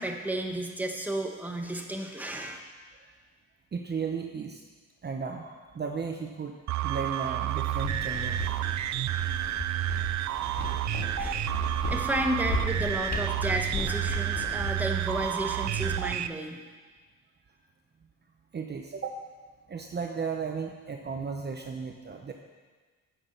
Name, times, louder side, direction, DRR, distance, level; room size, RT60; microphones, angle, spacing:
voice 1, 0.0-2.6 11.1-11.5 11.9-16.6, right 1 dB, 5° right, 2 dB, 1.4 m, -32 dB
voice 2, 3.7-4.6 5.0-6.6 6.8-8.4 18.5-19.2 19.7-22.3, right 5 dB, 35° right, 3 dB, 0.9 m, -35 dB
sound 1, 6.7-16.3, right 14 dB, 70° right, 0.5 m, -30 dB
sound 2, 7.5-16.0, left 4 dB, 65° left, 1.9 m, -37 dB
9.8 x 6.6 x 6.8 m, 1.4 s
cardioid pair, 90°, 30 cm